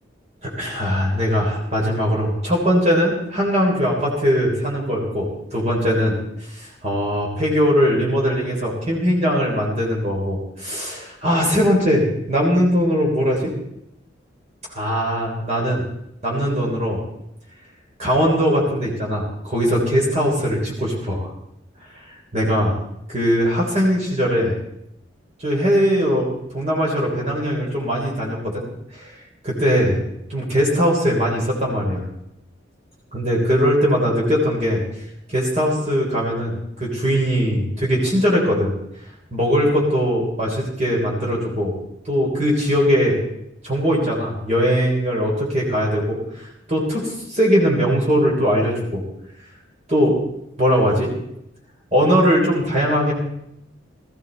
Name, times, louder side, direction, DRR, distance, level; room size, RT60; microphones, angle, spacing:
voice 1, 0.4-6.1 6.4-13.5 14.7-15.8 16.2-17.0 18.0-21.3 21.9-22.8 23.1-24.6 25.4-28.6 28.9-29.2 29.4-30.0 30.3-32.1 33.1-34.8 35.3-38.7 39.3-41.7 42.1-43.2 43.6-49.0 49.9-50.2 50.6-51.1 51.9-53.1, equal, 35° right, -3 dB, 3.6 m, -20 dB
18.0 x 15.0 x 4.1 m, 0.80 s
head